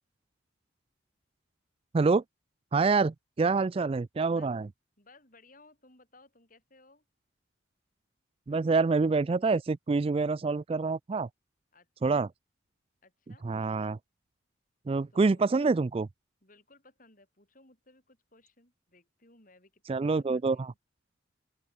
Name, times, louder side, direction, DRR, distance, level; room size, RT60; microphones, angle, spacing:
voice 1, 2.7-4.7 8.5-11.3 12.0-12.3 13.4-14.0 14.9-16.1 19.9-20.7, right 4 dB, 30° right, 0.3 m, -26 dB
voice 2, 4.3-4.7 5.0-7.0 11.7-12.2 13.0-13.4 15.1-15.6 16.4-20.8, left 2 dB, 45° left, 7.9 m, -60 dB
open air
head